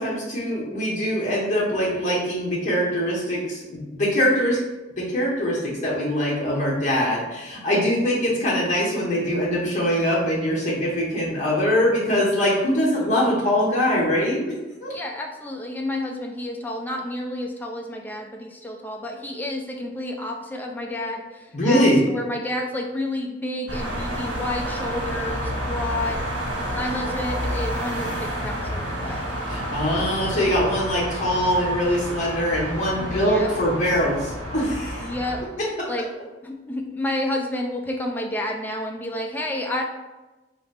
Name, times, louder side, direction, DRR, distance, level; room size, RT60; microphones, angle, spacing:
voice 1, 0.0-4.6 5.0-14.4 14.8-14.9 21.5-22.0 29.5-35.1, equal, 40° left, -5 dB, 1.0 m, -22 dB
voice 2, 14.9-26.3 26.7-29.2 33.0-33.5 35.0-35.4 35.9-36.0 36.4-39.8, left 1 dB, 10° left, 1 dB, 0.4 m, -30 dB
sound 1, 23.7-35.4, equal, 80° right, 1.4 m, -30 dB
3.9 x 2.5 x 3.3 m, 1.1 s
head